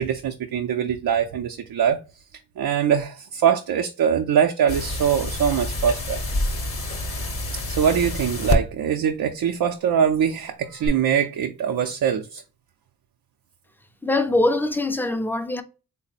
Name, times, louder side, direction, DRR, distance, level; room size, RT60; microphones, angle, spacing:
voice 1, 0.0-2.0 2.6-6.2 7.7-12.4, right 8 dB, 70° right, 0.5 m, -22 dB
sound 1, 4.7-8.6 10.8-10.9, left 2 dB, 35° left, 0.8 m, -27 dB
voice 2, 14.0-15.6, left 2 dB, 5° left, 0.4 m, -22 dB
3.5 x 2.0 x 3.9 m
cardioid pair, 90°, 37 cm